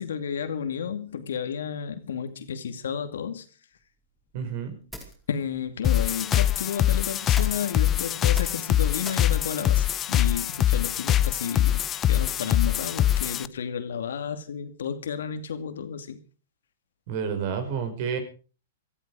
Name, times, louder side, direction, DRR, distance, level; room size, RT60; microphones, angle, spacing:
voice 1, 0.0-3.5 5.3-16.2, left 7 dB, 75° left, 2.4 m, -32 dB
sound 1, 3.7-11.0, equal, 5° right, 4.7 m, -46 dB
voice 2, 4.3-4.8 17.1-18.2, right 7 dB, 55° right, 5.3 m, -30 dB
sound 2, 5.8-13.5, left 11 dB, 25° left, 0.7 m, -23 dB
17.0 x 14.5 x 4.9 m
hypercardioid pair, 115°, 0 cm